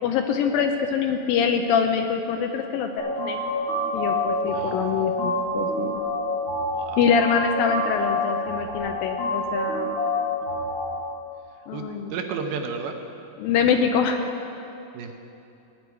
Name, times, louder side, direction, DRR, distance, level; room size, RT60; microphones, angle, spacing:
voice 1, 0.0-3.4 3.9-6.0 7.0-9.9 11.7-12.2 13.4-14.2, left 6 dB, 80° left, 5 dB, 2.2 m, -24 dB
sound 1, 3.0-11.0, left 1 dB, 40° left, 2.3 m, -27 dB
voice 2, 4.5-5.2 6.7-7.0 11.7-13.0 14.9-15.1, right 5 dB, 80° right, 4 dB, 2.7 m, -33 dB
16.5 x 9.4 x 4.6 m, 2.8 s
omnidirectional pair, 4.5 m